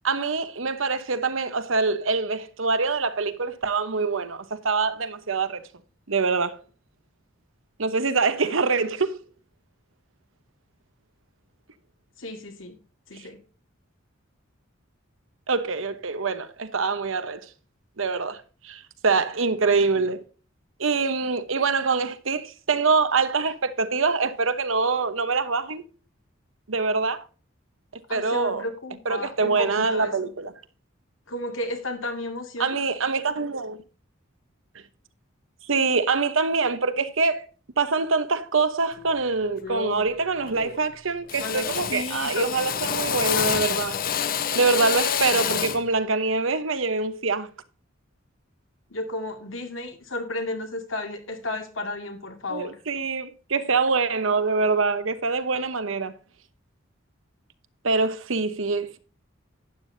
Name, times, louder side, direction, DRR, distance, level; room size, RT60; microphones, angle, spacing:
voice 1, 0.0-5.6 6.1-6.6 7.8-9.2 15.5-17.5 18.0-20.2 20.8-25.8 26.7-27.3 27.9-28.6 29.0-30.5 32.6-33.8 35.7-37.4 37.8-44.0 44.5-47.5 52.5-56.1 57.8-59.0, right 4 dB, 85° right, 1.0 m, -25 dB
voice 2, 12.2-12.8 13.1-13.4 28.1-30.3 31.3-32.8 41.4-42.5 48.9-52.8, left 2 dB, 75° left, 2.2 m, -33 dB
Drill, 39.0-39.2 39.6-40.1 40.4-40.9 41.3-45.9, left 8 dB, 45° left, 0.7 m, -28 dB
12.5 x 9.4 x 2.7 m
head